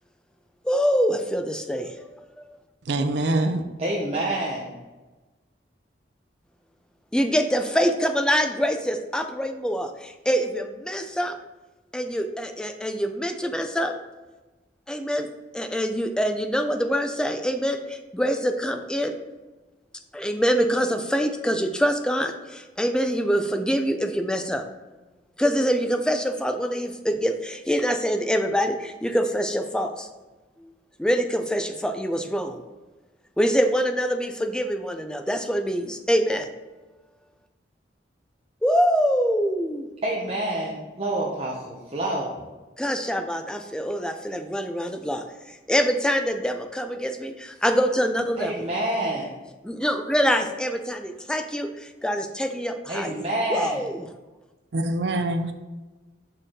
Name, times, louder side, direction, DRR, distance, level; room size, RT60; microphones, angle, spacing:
voice 1, 0.6-2.2 7.1-11.4 11.9-13.9 14.9-15.3 15.5-19.2 20.1-24.6 25.4-30.1 30.6-30.7 31.0-32.6 33.4-36.5 38.6-39.9 42.8-48.5 49.6-53.1 53.5-54.1, equal, 5° left, 0.4 m, -25 dB
voice 2, 2.9-3.6 54.7-55.5, right 2 dB, 70° right, 0.5 m, -24 dB
voice 3, 3.8-4.7 40.0-42.3 48.4-49.3 52.9-53.9, right 1 dB, 35° right, 0.8 m, -27 dB
6.3 x 4.6 x 3.7 m
head